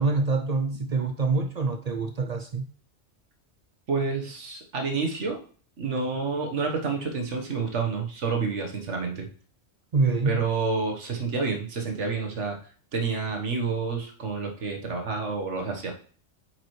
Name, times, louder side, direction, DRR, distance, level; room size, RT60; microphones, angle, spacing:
voice 1, 0.0-2.7 9.9-10.4, right 3 dB, 50° right, 0.5 m, -25 dB
voice 2, 3.9-5.4 5.8-9.3 10.3-12.6 12.9-15.9, right 4 dB, 85° right, 1.6 m, -29 dB
8.7 x 4.9 x 3.2 m
omnidirectional pair, 1.2 m